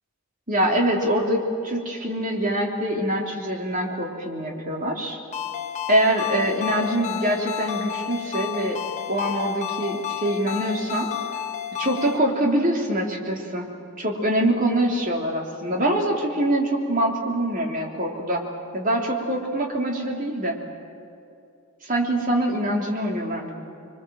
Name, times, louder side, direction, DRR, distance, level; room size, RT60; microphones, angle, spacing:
voice 1, 0.5-5.2 5.9-8.8 9.1-11.1 11.8-13.6 14.0-18.4 18.7-20.6 21.8-23.5, right 1 dB, 40° right, 0 dB, 3.4 m, -24 dB
Ringtone, 5.3-12.2, left 10 dB, 35° left, 1.5 m, -31 dB
27.0 x 23.5 x 7.7 m, 2.7 s
head